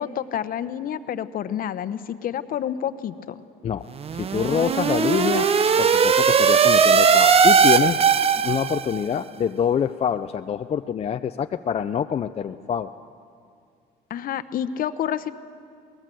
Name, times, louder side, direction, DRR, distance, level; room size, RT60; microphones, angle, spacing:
voice 1, 0.0-3.4 14.1-15.3, left 9 dB, 55° left, 12 dB, 0.9 m, -29 dB
sound 1, 4.0-9.0, right 6 dB, 35° right, 0.8 m, -18 dB
voice 2, 4.1-5.5 5.8-8.0 8.4-12.9, left 8 dB, 35° left, 8 dB, 0.5 m, -25 dB
23.0 x 19.0 x 7.7 m, 2.3 s
cardioid pair, 110°, 17 cm